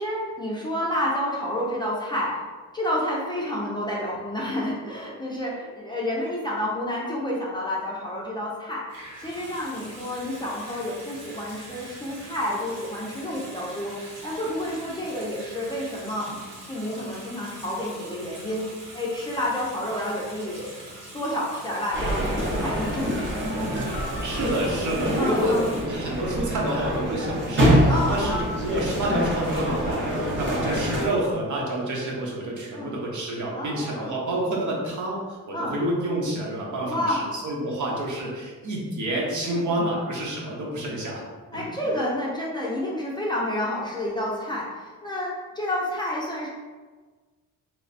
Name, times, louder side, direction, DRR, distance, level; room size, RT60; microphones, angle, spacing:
voice 1, 0.0-2.4 2.7-8.8 9.2-13.9 14.2-16.3 16.7-20.8 21.1-23.5 25.2-25.7 27.9-28.4 32.7-32.9 33.5-34.2 35.5-35.8 36.8-37.2 39.4-39.9 41.5-46.5, left 1 dB, 15° left, -5 dB, 0.5 m, -29 dB
Water tap faucet / Sink (filling or washing) / Bathtub (filling or washing), 8.9-25.8, right 1 dB, 80° right, 1.2 m, -43 dB
sound 1, 21.9-31.0, equal, 35° right, 0.8 m, -25 dB
voice 2, 24.2-25.6 25.9-41.2 41.5-42.1, right 1 dB, 60° right, -3 dB, 0.9 m, -28 dB
3.3 x 2.2 x 4.0 m, 1.4 s
wide cardioid pair, 150°, 33 cm